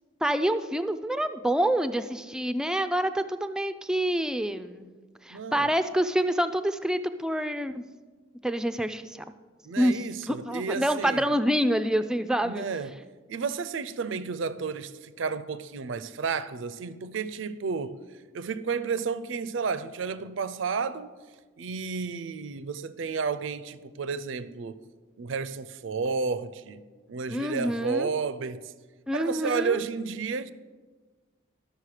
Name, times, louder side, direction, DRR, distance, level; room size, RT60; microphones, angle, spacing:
voice 1, 0.2-4.9 5.2-7.8 8.4-9.2 9.8-12.7 27.3-28.1 29.1-29.8, equal, 5° right, 0.3 m, -27 dB
voice 2, 5.3-5.7 9.6-11.2 12.4-13.0 13.3-18.0 18.3-21.1 21.6-24.8 25.2-26.8 27.1-28.7 29.1-30.5, right 5 dB, 70° right, 0.5 m, -32 dB
12.5 x 6.3 x 4.9 m
head